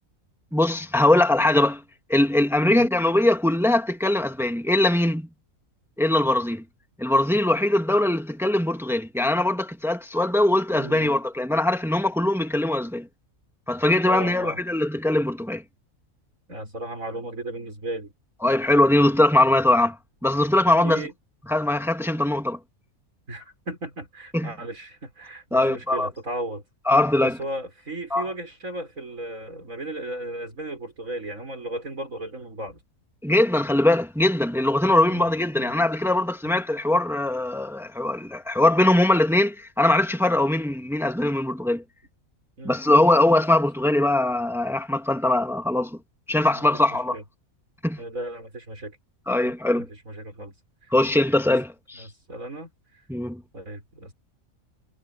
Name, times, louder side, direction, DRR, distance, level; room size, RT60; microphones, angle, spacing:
voice 1, 0.5-1.8 2.1-5.3 6.0-6.6 7.0-13.1 13.7-15.6 18.4-20.0 20.2-21.1 21.5-22.6 24.3-24.5 25.5-26.1 26.9-27.4 28.1-28.3 33.2-41.8 42.6-46.0 46.3-47.2 47.8-48.0 49.3-49.9 50.9-52.1 53.1-53.4, left 1 dB, ahead, 1.9 m, -21 dB
voice 2, 10.7-11.1 14.1-14.6 16.5-18.1 20.8-21.1 23.3-26.6 27.2-32.8 35.1-35.3 35.6-35.7 42.6-43.0 43.3-43.4 46.3-46.8 47.1-47.2 48.0-49.0 50.1-50.5 50.8-50.9 52.0-53.0 53.5-54.1, right 1 dB, 70° right, 6.5 m, -35 dB
omnidirectional pair, 1.5 m